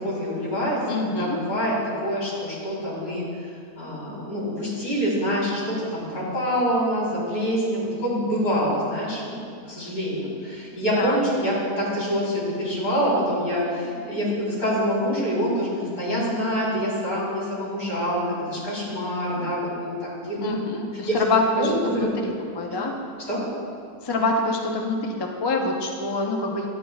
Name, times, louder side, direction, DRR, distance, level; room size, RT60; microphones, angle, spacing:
voice 1, 0.0-1.8 2.0-3.2 3.8-20.5 21.0-21.2 21.6-22.1 22.7-22.8 23.3-23.4, equal, 70° left, -6 dB, 2.9 m, -26 dB
voice 2, 0.9-1.4 11.0-11.2 20.4-23.0 24.0-26.7, left 2 dB, 40° left, 1 dB, 0.3 m, -26 dB
11.5 x 8.5 x 2.3 m, 2.4 s
omnidirectional pair, 1.6 m